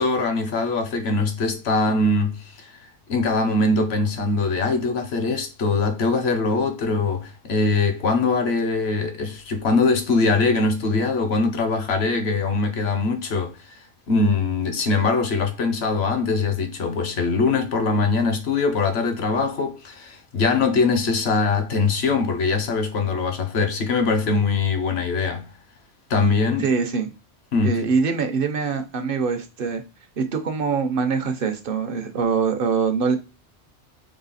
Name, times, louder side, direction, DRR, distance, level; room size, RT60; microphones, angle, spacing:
voice 1, 0.0-2.7 3.1-13.8 14.1-25.5 26.1-26.7 27.5-27.8, left 3 dB, 65° left, 1.1 m, -22 dB
voice 2, 26.6-27.1 27.6-29.8 30.2-33.2, right 5 dB, 55° right, 0.9 m, -23 dB
3.8 x 3.2 x 4.1 m
omnidirectional pair, 1.2 m